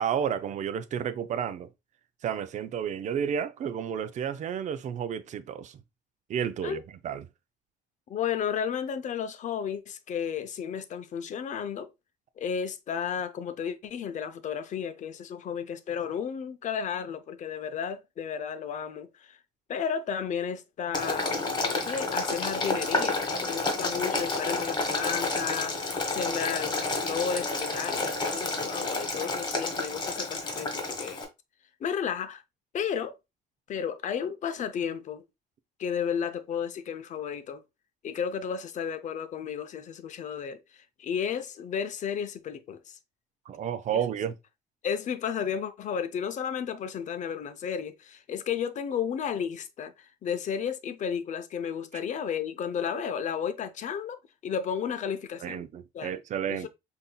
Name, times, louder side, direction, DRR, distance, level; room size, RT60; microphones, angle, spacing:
voice 1, 0.0-1.7 2.2-5.8 6.3-7.3 43.5-44.4 55.4-56.7, right 8 dB, 45° right, 0.4 m, -31 dB
voice 2, 8.1-11.9 12.4-19.4 19.7-31.2 31.8-32.4 32.7-33.1 33.7-35.2 35.8-37.6 38.0-40.6 41.0-43.0 44.8-55.6 55.9-56.2 56.5-56.7, left 7 dB, 45° left, 0.5 m, -33 dB
Boiling, 20.9-31.2, left 3 dB, 25° left, 1.3 m, -30 dB
5.3 x 2.7 x 2.2 m
cardioid pair, 110°, 17 cm